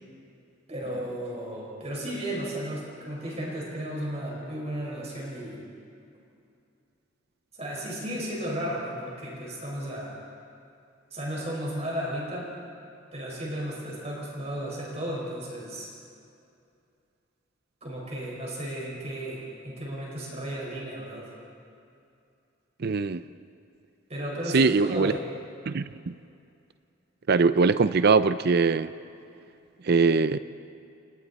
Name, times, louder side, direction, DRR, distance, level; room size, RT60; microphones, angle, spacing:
voice 1, 0.7-5.6 7.6-10.2 11.1-12.5 13.1-15.9 17.8-21.3 24.1-25.3, right 1 dB, 35° right, -3 dB, 5.2 m, -34 dB
voice 2, 22.8-23.2 24.5-25.1 25.7-26.1 27.3-28.9 29.8-30.4, right 4 dB, 55° right, 13 dB, 0.5 m, -22 dB
30.0 x 28.5 x 4.2 m, 2.5 s
head